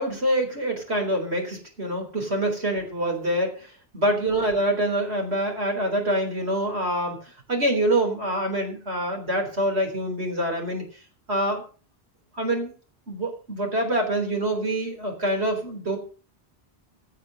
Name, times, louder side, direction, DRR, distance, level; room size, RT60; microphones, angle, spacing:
voice 1, 0.0-7.2 7.5-10.8 11.3-11.6 12.3-12.7 13.1-16.0, right 1 dB, 85° right, 3 dB, 4.3 m, -25 dB
16.5 x 6.6 x 6.4 m, 0.38 s
omnidirectional pair, 1.1 m